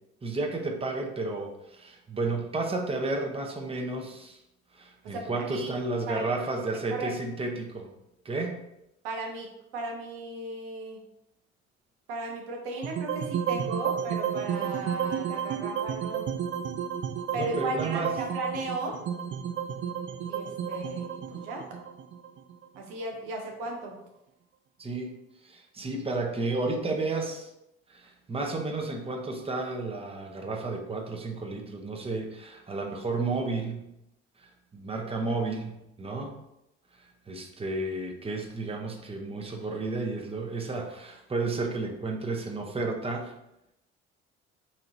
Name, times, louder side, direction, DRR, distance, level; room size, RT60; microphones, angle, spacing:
voice 1, 0.2-4.4 4.7-7.9 8.2-8.6 17.3-18.1 24.8-25.2 25.4-27.5 27.9-33.9 34.7-36.4 37.3-43.3, right 3 dB, 20° right, 1 dB, 0.7 m, -32 dB
voice 2, 5.0-5.7 6.1-6.3 6.9-7.1 9.0-11.0 12.1-16.2 17.3-19.0 20.3-21.7 22.8-24.0, right 2 dB, 85° right, 2 dB, 0.6 m, -36 dB
sound 1, 12.8-23.0, right 8 dB, 40° right, 0.4 m, -32 dB
4.2 x 2.8 x 2.6 m, 0.84 s
hypercardioid pair, 55°, 30 cm